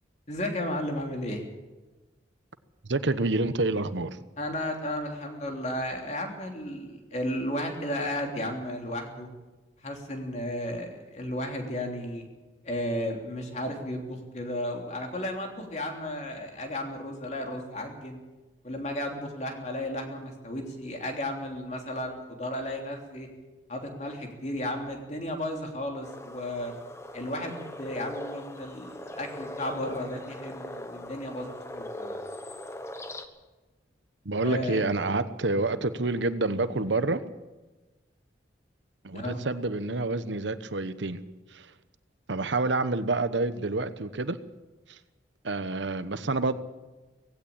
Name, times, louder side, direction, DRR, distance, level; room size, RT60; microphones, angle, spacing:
voice 1, 0.3-1.5 4.4-9.3 9.8-12.2 12.6-18.2 18.6-23.3 23.7-26.7 27.1-32.2 34.4-34.8 39.1-39.4, left 1 dB, 40° left, 3.3 m, -34 dB
voice 2, 2.8-4.2 34.2-37.2 39.0-41.2 41.5-41.7 42.3-44.4 44.9-45.0 45.4-46.6, right 2 dB, 80° right, 1.0 m, -28 dB
sound 1, 26.0-33.3, left 1 dB, 15° left, 1.2 m, -40 dB
18.5 x 16.0 x 8.8 m
head